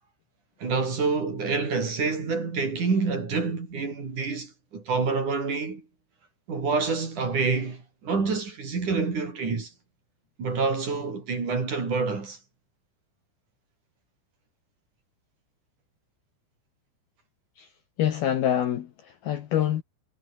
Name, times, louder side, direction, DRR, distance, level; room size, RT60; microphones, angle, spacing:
voice 1, 0.6-5.9 6.5-9.7 10.4-12.4, right 4 dB, 40° right, 6.0 m, -27 dB
voice 2, 18.0-19.8, left 10 dB, 60° left, 2.9 m, -26 dB
omnidirectional pair, 5.8 m